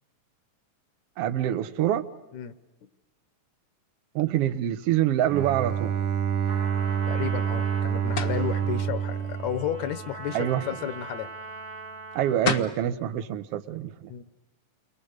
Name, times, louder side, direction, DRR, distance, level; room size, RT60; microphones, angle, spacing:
voice 1, 1.2-2.1 4.2-5.9 10.3-10.7 12.2-14.1, right 11 dB, 60° right, 10 dB, 1.8 m, -26 dB
Bowed string instrument, 5.3-10.5, right 8 dB, 80° right, 2.6 m, -28 dB
Trumpet, 6.5-12.7, right 3 dB, 25° right, 1.2 m, -41 dB
voice 2, 7.1-11.3 14.1-14.2, left 9 dB, 70° left, 12 dB, 2.3 m, -32 dB
sound 1, 8.1-8.5 12.1-12.2 12.4-12.8, left 5 dB, 45° left, 1.1 m, -28 dB
30.0 x 23.5 x 6.6 m, 1.1 s
omnidirectional pair, 3.5 m